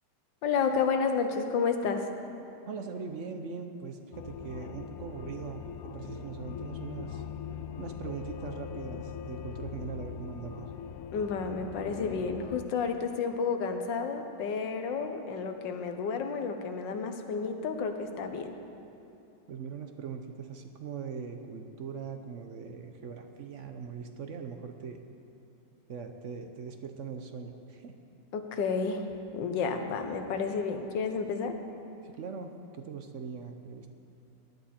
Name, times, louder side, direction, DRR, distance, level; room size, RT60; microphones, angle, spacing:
voice 1, 0.4-2.1 11.1-18.5 28.3-29.0 29.3-31.6, left 5 dB, 85° left, 6 dB, 1.6 m, -31 dB
voice 2, 2.7-7.2 7.8-10.7 19.5-25.0 25.9-27.9 32.0-33.9, right 6 dB, 60° right, 6 dB, 0.8 m, -41 dB
sound 1, 4.1-12.7, left 8 dB, 70° left, 0.9 m, -41 dB
18.5 x 10.5 x 4.3 m, 2.8 s
omnidirectional pair, 1.9 m